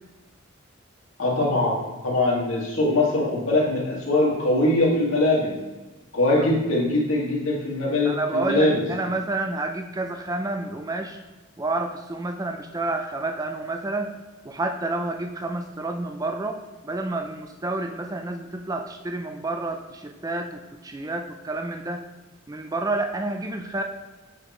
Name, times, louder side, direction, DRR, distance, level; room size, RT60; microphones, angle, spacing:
voice 1, 1.2-1.8 2.0-5.6 6.1-8.8, left 2 dB, 90° left, -3 dB, 2.0 m, -22 dB
voice 2, 8.0-11.2 11.6-14.1 14.4-22.0 22.5-23.8, right 2 dB, 15° right, 5 dB, 0.4 m, -29 dB
8.1 x 5.7 x 3.0 m, 1.1 s
head